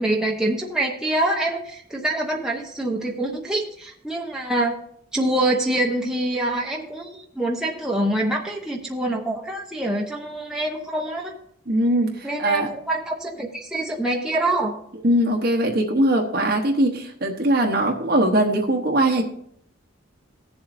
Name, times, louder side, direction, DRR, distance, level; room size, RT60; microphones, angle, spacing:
voice 1, 0.0-4.7 5.1-11.3 12.2-14.7, right 1 dB, 5° right, -2 dB, 0.9 m, -25 dB
voice 2, 11.7-12.7 15.0-19.2, right 1 dB, 50° right, 1 dB, 1.0 m, -21 dB
17.5 x 7.2 x 2.6 m, 0.68 s
head